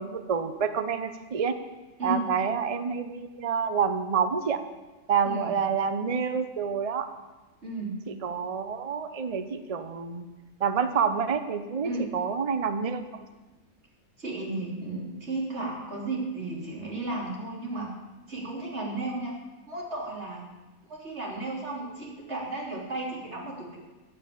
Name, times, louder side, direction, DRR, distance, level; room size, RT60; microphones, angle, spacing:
voice 1, 0.0-1.5 2.0-4.6 5.1-7.1 8.1-10.2 10.6-13.2, right 6 dB, 30° right, 9 dB, 0.8 m, -28 dB
voice 2, 7.6-8.0 11.8-12.0 14.2-17.9 18.3-19.4 19.7-20.5 20.9-23.8, right 2 dB, 50° right, -2 dB, 3.6 m, -34 dB
14.0 x 8.7 x 8.6 m, 1.2 s
omnidirectional pair, 1.5 m